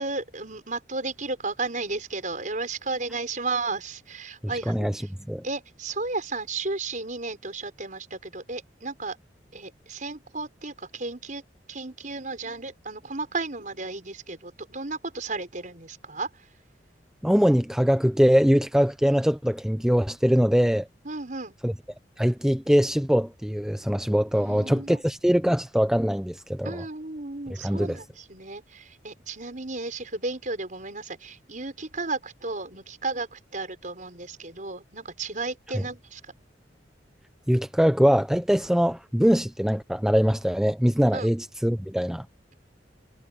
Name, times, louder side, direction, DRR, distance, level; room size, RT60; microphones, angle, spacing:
voice 1, 0.0-5.1 5.4-9.2 9.5-11.4 11.7-16.5 21.0-21.5 24.3-25.0 26.6-36.3 41.1-41.3, right 3 dB, 45° right, 5.8 m, -34 dB
voice 2, 17.2-20.9 21.6-21.7 22.2-26.8 27.6-28.0 37.5-42.3, equal, 5° right, 0.7 m, -22 dB
head